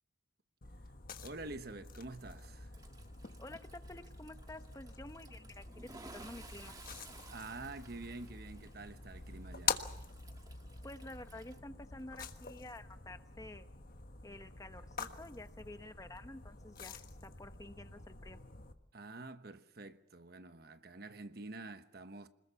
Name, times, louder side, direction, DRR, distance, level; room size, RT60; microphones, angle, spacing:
sound 1, 0.6-18.7, left 5 dB, 50° left, 1.4 m, -46 dB
voice 1, 1.2-2.7 7.3-9.8 18.9-22.3, right 2 dB, 55° right, 1.2 m, -47 dB
Toilet flush, 2.7-11.6, right 3 dB, 20° right, 1.6 m, -57 dB
voice 2, 3.4-6.7 10.8-13.7 14.2-18.4, left 1 dB, 20° left, 1.0 m, -50 dB
26.0 x 20.5 x 7.0 m
head